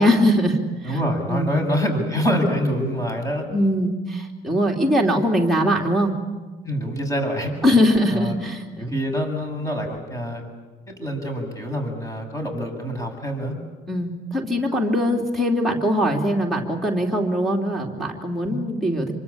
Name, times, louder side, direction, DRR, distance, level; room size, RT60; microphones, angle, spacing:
voice 1, 0.0-1.0 1.3-1.6 3.5-6.1 7.6-8.9 13.9-19.1, equal, ahead, -1 dB, 3.1 m, -21 dB
voice 2, 0.8-3.5 6.7-7.5 8.1-8.3 8.9-10.4 10.9-13.6 18.4-18.6, equal, 20° left, 5 dB, 7.4 m, -25 dB
26.0 x 24.0 x 8.7 m, 1.3 s
cardioid pair, 110°, 17 cm